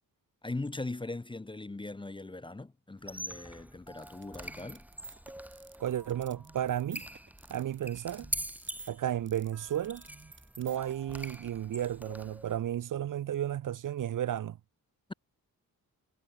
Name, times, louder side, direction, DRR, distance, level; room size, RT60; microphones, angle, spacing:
voice 1, 0.4-4.8, left 2 dB, 15° left, 0.7 m, -40 dB
Squeak, 3.0-12.6, right 1 dB, 5° right, 1.2 m, -44 dB
sound 1, 3.9-11.4, right 4 dB, 30° right, 6.6 m, -52 dB
voice 2, 5.8-7.0 7.5-8.3 8.9-10.0 10.6-14.6, right 11 dB, 60° right, 0.6 m, -33 dB
wide cardioid pair, 110°, 37 cm